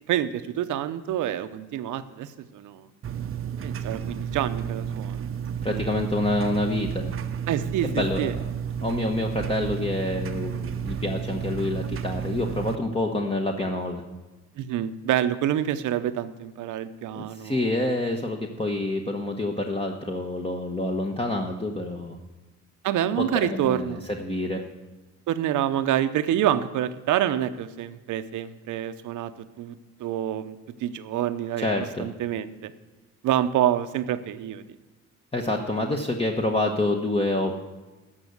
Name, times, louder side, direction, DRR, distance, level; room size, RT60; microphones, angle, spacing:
voice 1, 0.1-2.9 3.6-5.3 5.7-5.9 7.5-8.3 14.6-17.7 22.8-24.0 25.3-29.3 29.6-31.7 32.0-32.7 33.2-34.7, right 11 dB, 80° right, 11 dB, 0.8 m, -27 dB
sound 1, 3.0-12.8, right 8 dB, 45° right, 0.7 m, -32 dB
voice 2, 5.6-7.1 7.8-8.4 8.8-14.0 17.1-22.2 23.2-24.6 31.6-32.1 35.3-37.5, left 2 dB, 20° left, 2 dB, 1.1 m, -27 dB
13.5 x 5.6 x 8.0 m, 1.2 s
cardioid pair, 90°, 30 cm